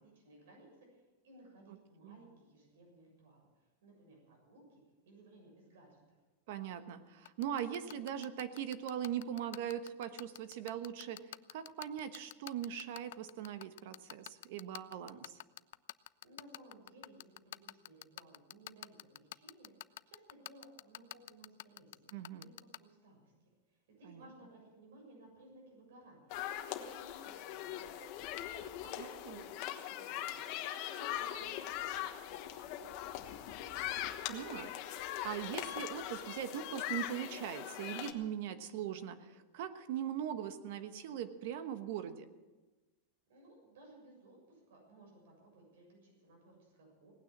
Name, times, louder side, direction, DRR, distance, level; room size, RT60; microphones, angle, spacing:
voice 1, 0.0-3.5 3.8-6.2 16.2-19.7 20.1-22.1 22.4-23.3 23.7-26.3 26.7-34.1 43.3-47.1, right 1 dB, 80° right, 0 dB, 6.9 m, -59 dB
voice 2, 6.5-11.2 11.5-15.4 22.1-22.5 24.1-24.2 29.3-29.4 34.3-42.3, right 9 dB, 55° right, 10 dB, 1.2 m, -40 dB
sound 1, 7.3-22.8, left 15 dB, 65° left, 0.4 m, -46 dB
sound 2, 26.3-38.1, left 12 dB, 40° left, 1.2 m, -41 dB
18.0 x 9.3 x 7.3 m, 1.2 s
supercardioid pair, 170°, 0 cm